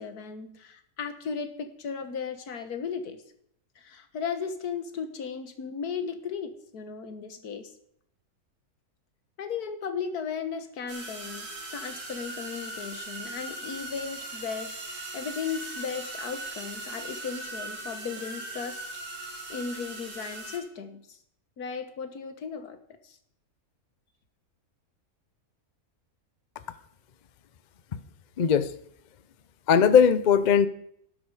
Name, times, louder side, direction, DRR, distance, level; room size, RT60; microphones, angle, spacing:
voice 1, 0.0-3.2 3.8-7.7 9.4-14.8 15.1-18.8 19.5-21.2 21.6-22.8 23.0-23.2, left 6 dB, 80° left, 9 dB, 1.8 m, -36 dB
sound 1, 10.9-20.6, right 2 dB, 85° right, 2.8 m, -39 dB
voice 2, 28.4-28.7 29.7-30.7, left 7 dB, 50° left, 13 dB, 0.5 m, -19 dB
12.5 x 11.5 x 4.8 m, 0.70 s
omnidirectional pair, 1.6 m